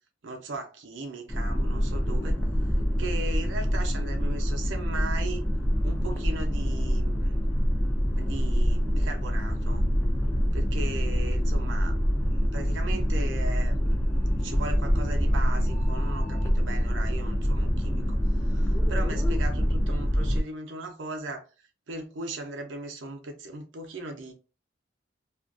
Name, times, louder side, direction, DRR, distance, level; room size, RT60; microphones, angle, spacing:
voice 1, 0.2-5.4 5.8-7.5 8.1-9.8 10.5-12.0 12.3-21.5 21.9-24.3, right 2 dB, 75° right, 0.6 m, -38 dB
sound 1, 1.3-20.4, equal, 10° left, 0.4 m, -25 dB
2.4 x 2.2 x 2.5 m
head